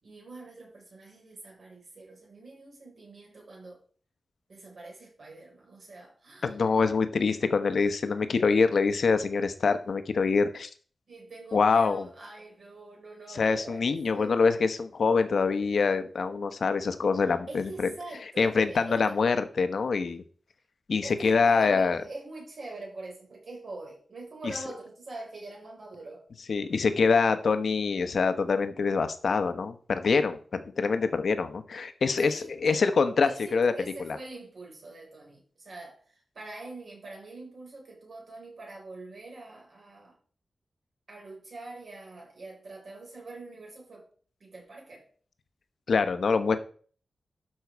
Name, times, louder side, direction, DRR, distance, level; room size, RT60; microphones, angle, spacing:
voice 1, 0.0-3.8 4.5-6.6 11.1-14.4 17.5-19.3 21.0-26.3 32.2-32.9 33.2-40.2 41.1-44.1 44.4-45.1, right 2 dB, 55° right, 4.6 m, -44 dB
voice 2, 6.4-10.7 11.5-12.1 13.3-17.9 18.4-20.2 20.9-22.0 26.5-33.7 34.0-34.2 45.9-46.6, left 4 dB, 60° left, 1.0 m, -25 dB
12.0 x 5.5 x 4.6 m
wide cardioid pair, 175°, 0 cm